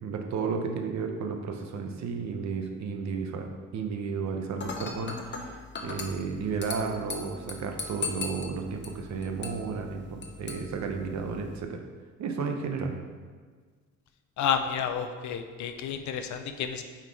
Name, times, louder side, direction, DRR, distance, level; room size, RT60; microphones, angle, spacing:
voice 1, 0.0-11.8 12.2-13.0, right 5 dB, 65° right, 4 dB, 0.9 m, -33 dB
Dishes pots and pans / Glass, 4.6-11.6, left 4 dB, 35° left, 0.9 m, -39 dB
voice 2, 14.4-16.8, left 7 dB, 70° left, 8 dB, 0.6 m, -30 dB
5.4 x 4.5 x 4.7 m, 1.5 s
cardioid pair, 90°, 30 cm